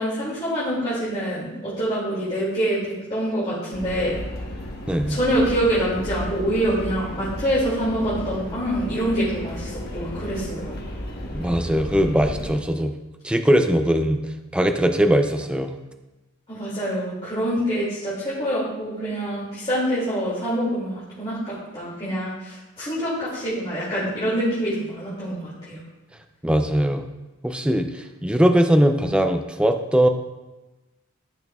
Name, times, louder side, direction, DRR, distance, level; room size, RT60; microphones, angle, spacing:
voice 1, 0.0-4.2 5.1-10.7 16.5-25.4 25.6-25.8, right 1 dB, 25° left, -10 dB, 2.5 m, -25 dB
sound 1, 3.7-12.6, left 1 dB, 50° left, 1.3 m, -33 dB
voice 2, 4.9-5.2 11.3-12.9 13.2-14.2 14.5-15.7 26.4-27.1 27.4-30.1, equal, 5° right, 6 dB, 0.4 m, -20 dB
12.5 x 6.1 x 2.4 m, 1.1 s
head